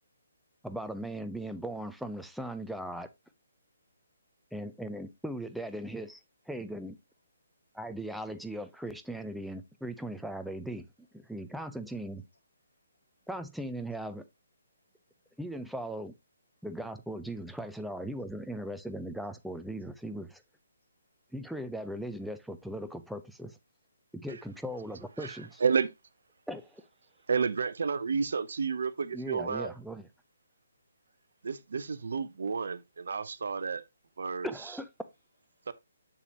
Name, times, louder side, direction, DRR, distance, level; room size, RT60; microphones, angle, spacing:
voice 1, 0.6-3.1 4.5-7.0 7.7-10.9 11.1-12.2 13.3-14.2 15.4-16.1 16.6-20.4 21.3-23.6 24.1-25.6 26.5-26.8 29.1-30.1 34.4-34.9, right 1 dB, ahead, 0.6 m, -38 dB
voice 2, 11.3-12.0 12.7-13.6 14.8-14.9 16.7-17.1 17.4-18.9 19.2-19.3 19.7-19.9 21.1-21.7 23.7-23.9 27.1-27.2 30.0-30.1 32.3-32.4 34.6-35.7, right 2 dB, 65° left, 4.7 m, -76 dB
voice 3, 25.2-25.9 27.3-29.8 31.4-33.8 34.2-34.5 35.7-35.8, right 5 dB, 60° right, 0.7 m, -31 dB
6.9 x 6.8 x 2.8 m
figure-of-eight pair, 140°, 0 cm